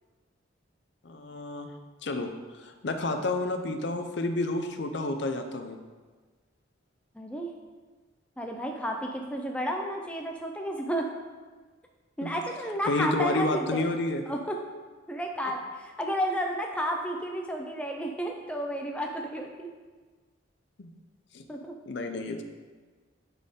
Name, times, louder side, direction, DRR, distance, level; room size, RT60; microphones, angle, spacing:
voice 1, 1.0-1.7 2.0-2.3 2.6-5.8 12.2-12.3 12.8-14.2 20.8-20.9 21.3-21.4 21.9-22.4, left 2 dB, 60° left, 6 dB, 0.6 m, -30 dB
voice 2, 7.1-7.5 8.4-11.1 12.2-13.9 14.3-14.6 15.1-19.7 21.5-21.8, equal, 5° left, 1 dB, 0.4 m, -32 dB
10.0 x 4.2 x 3.7 m, 1.4 s
head